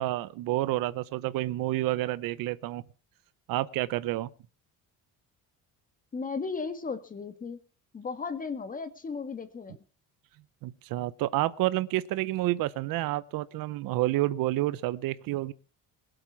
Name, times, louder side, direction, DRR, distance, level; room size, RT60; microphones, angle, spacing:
voice 1, 0.0-2.8 3.5-4.3 10.6-15.5, right 16 dB, 75° right, 0.9 m, -29 dB
voice 2, 6.1-7.6 7.9-9.8, left 4 dB, 25° left, 1.7 m, -35 dB
21.5 x 8.0 x 5.9 m
cardioid pair, 160°, 34 cm